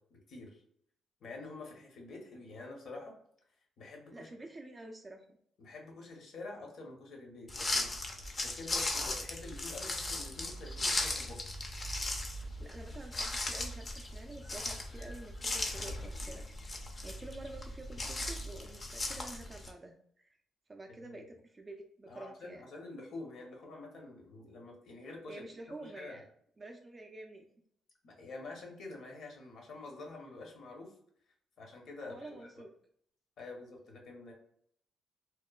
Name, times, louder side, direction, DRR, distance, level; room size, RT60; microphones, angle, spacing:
voice 1, 0.1-0.6 1.2-3.1 3.8-4.4 5.6-7.9 8.4-11.4 21.0-21.3 22.1-25.4 25.8-26.2 28.0-30.9 31.6-32.6 33.4-34.3, left 3 dB, 65° left, 1 dB, 0.7 m, -47 dB
voice 2, 4.1-5.4 12.6-20.4 20.7-22.7 25.3-26.3 26.6-27.5 32.0-32.7, right 2 dB, 25° right, 3 dB, 0.3 m, -49 dB
sound 1, 7.5-19.7, left 2 dB, 35° left, 0.5 m, -37 dB
2.8 x 2.1 x 2.2 m, 0.67 s
cardioid pair, 90°, 0 cm